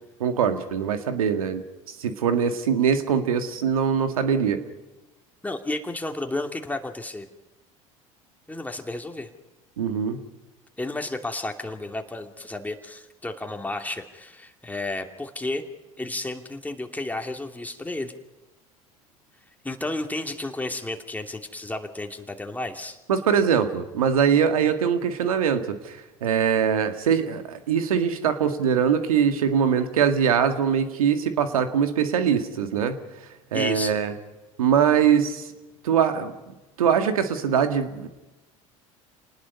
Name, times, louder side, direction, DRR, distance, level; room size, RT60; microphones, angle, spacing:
voice 1, 0.2-4.6 9.8-10.2 23.1-33.0 33.5-34.1 34.6-35.5 35.8-36.3 36.8-38.1, right 7 dB, 85° right, 8 dB, 1.9 m, -22 dB
voice 2, 5.4-7.3 8.5-9.3 10.8-15.6 16.0-18.1 19.6-23.0 33.5-34.0, left 2 dB, 10° left, 4 dB, 2.7 m, -32 dB
28.0 x 19.5 x 5.5 m, 1.1 s
hypercardioid pair, 70°, 18 cm